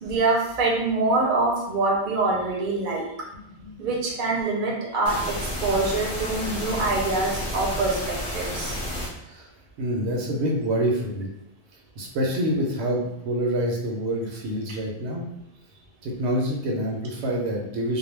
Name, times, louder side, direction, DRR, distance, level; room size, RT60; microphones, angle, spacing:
voice 1, 0.0-3.1 3.8-8.8, right 3 dB, 55° right, -1 dB, 0.7 m, -25 dB
sound 1, 5.0-9.1, left 1 dB, 35° left, 0.6 m, -31 dB
voice 2, 9.8-11.3 12.0-15.3 16.0-18.0, right 1 dB, 85° right, -1 dB, 0.9 m, -26 dB
2.3 x 2.1 x 3.1 m, 0.81 s
omnidirectional pair, 1.1 m